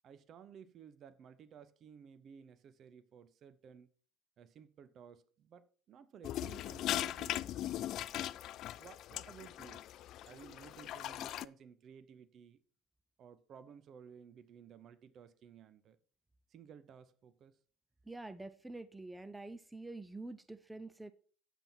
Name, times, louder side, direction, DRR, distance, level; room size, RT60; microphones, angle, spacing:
voice 1, 0.0-3.9 4.4-7.5 8.1-8.4 8.6-9.8 10.3-12.6 13.2-16.0 16.5-17.6, right 7 dB, 45° right, 0.8 m, -56 dB
sound 1, 6.2-11.4, left 12 dB, 50° left, 0.3 m, -39 dB
voice 2, 18.1-21.1, right 2 dB, 10° right, 0.6 m, -47 dB
8.9 x 7.7 x 4.5 m
figure-of-eight pair, 70°, 0 cm